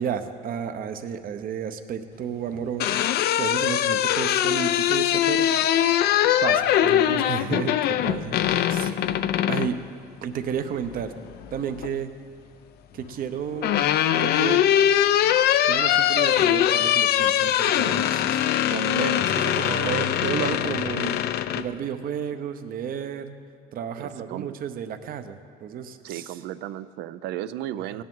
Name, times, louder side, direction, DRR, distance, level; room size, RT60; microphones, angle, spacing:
voice 1, 0.0-3.0 3.4-5.5 5.7-8.4 8.7-9.0 9.5-9.8 10.2-11.1 11.5-12.1 12.9-13.8 14.2-14.7 15.7-23.4 23.7-26.4 27.9-28.0, right 8 dB, 60° right, 9 dB, 0.8 m, -32 dB
sound 1, 2.5-9.7 11.2-11.9 13.1-21.7, left 11 dB, 70° left, 0.4 m, -22 dB
voice 2, 19.6-20.6 24.0-24.5 26.0-28.0, right 12 dB, 85° right, 14 dB, 0.5 m, -35 dB
17.0 x 10.5 x 3.8 m, 2.3 s
cardioid pair, 110°, 17 cm